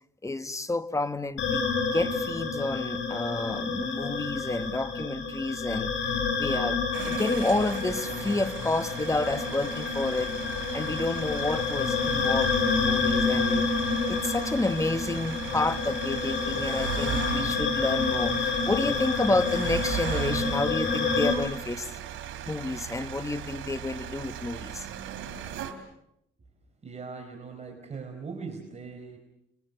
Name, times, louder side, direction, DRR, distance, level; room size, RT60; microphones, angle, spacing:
voice 1, 0.2-1.6 1.9-5.9 6.4-10.3 10.7-13.7 14.1-21.9 22.5-24.9, left 2 dB, 15° left, 1.4 m, -30 dB
sound 1, 1.4-21.3, left 4 dB, 75° left, 5.1 m, -29 dB
sound 2, 6.9-25.7, right 10 dB, 80° right, 3.4 m, -38 dB
voice 2, 26.8-29.2, right 5 dB, 35° right, 4.6 m, -40 dB
30.0 x 22.5 x 6.8 m
cardioid pair, 90°, 20 cm